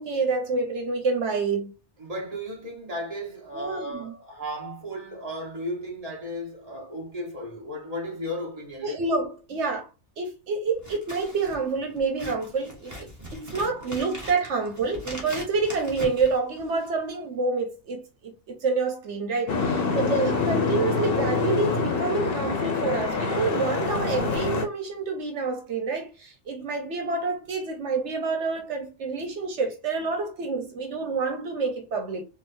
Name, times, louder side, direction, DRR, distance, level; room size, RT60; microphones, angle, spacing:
voice 1, 0.0-1.7 3.5-4.1 8.8-9.9 10.2-32.2, right 4 dB, 80° right, 1.2 m, -28 dB
voice 2, 2.0-9.0, equal, 35° right, 1.6 m, -35 dB
Scissors, 10.7-17.0, equal, 15° right, 1.4 m, -40 dB
Boat Water vehicle, 19.5-24.6, left 4 dB, 60° left, 0.9 m, -26 dB
4.8 x 2.5 x 2.7 m
omnidirectional pair, 1.2 m